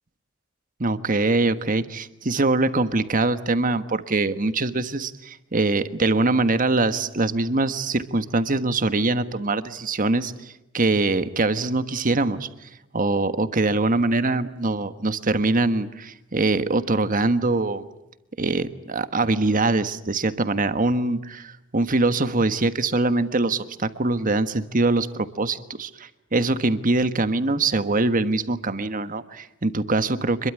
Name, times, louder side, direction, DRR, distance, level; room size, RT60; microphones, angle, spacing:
voice 1, 0.8-12.5 12.9-17.9 18.4-30.5, right 2 dB, 45° right, 11 dB, 1.4 m, -23 dB
27.0 x 22.0 x 9.7 m, 0.91 s
head